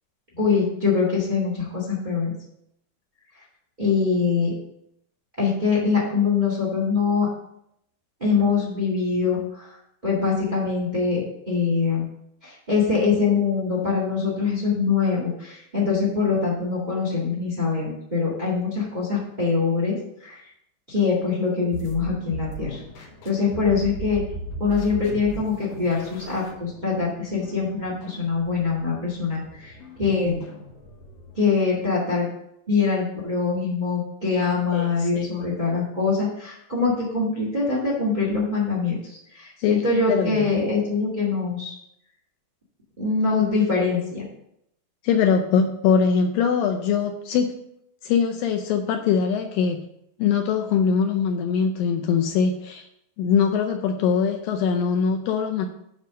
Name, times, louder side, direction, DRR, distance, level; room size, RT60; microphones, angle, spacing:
voice 1, 0.4-2.3 3.8-4.5 5.4-7.3 8.2-9.7 10.0-12.1 12.4-19.9 20.2-20.4 20.9-24.2 24.6-30.4 31.3-32.3 32.7-41.7 43.0-44.2, left 5 dB, 35° right, -4 dB, 0.6 m, -23 dB
sound 1, 21.7-31.4, right 1 dB, 60° left, 2.4 m, -38 dB
voice 2, 34.7-35.3 39.6-39.8 40.1-40.5 45.0-47.5 48.0-49.8 50.2-52.8 53.2-55.7, left 6 dB, 80° left, 5 dB, 2.2 m, -22 dB
9.1 x 3.5 x 6.2 m, 0.77 s
omnidirectional pair, 4.3 m